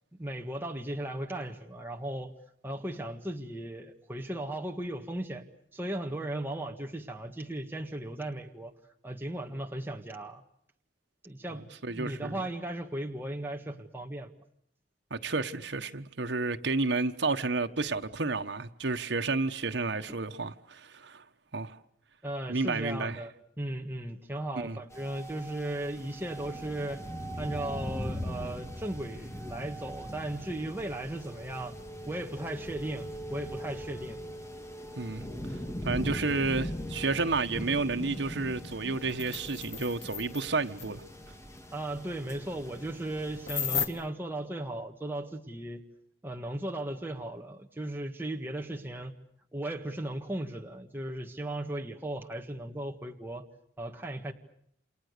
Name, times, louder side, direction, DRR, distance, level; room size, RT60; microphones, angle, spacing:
voice 1, 0.1-2.3 2.6-5.4 5.7-8.7 9.0-10.4 11.2-14.3 20.1-20.2 22.2-27.0 27.4-31.7 32.1-34.2 41.7-45.8 46.2-49.1 49.5-53.4 53.8-54.3, right 1 dB, 10° right, 1.7 m, -36 dB
voice 2, 11.5-12.4 15.1-21.2 21.5-21.8 22.5-23.2 24.5-24.8 35.0-35.6 35.8-41.0, right 3 dB, 80° right, 1.3 m, -31 dB
sound 1, 24.9-43.9, equal, 15° left, 2.0 m, -40 dB
sound 2, 38.7-38.8 39.0-40.5 40.8-40.9 43.5-43.9, left 7 dB, 85° left, 2.6 m, -34 dB
29.0 x 28.0 x 6.8 m
head